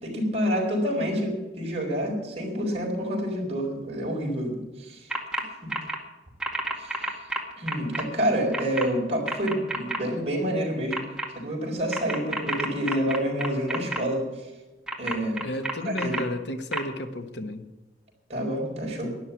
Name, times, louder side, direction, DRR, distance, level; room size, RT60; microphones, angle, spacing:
voice 1, 0.0-5.1 5.6-5.7 6.8-7.2 7.6-11.0 11.3-14.5 15.0-15.5 15.8-16.2 18.3-19.1, equal, 35° right, -2 dB, 5.0 m, -28 dB
sound 1, 5.1-5.4 5.7-6.0 6.4-8.0 8.5-8.8 9.3-10.0 10.9-11.3 11.9-14.0 14.9-16.2 16.7-16.8, right 1 dB, 5° right, 1.8 m, -29 dB
voice 2, 15.4-17.6, left 1 dB, 75° left, 8 dB, 1.4 m, -32 dB
12.0 x 11.0 x 8.4 m, 1.1 s
head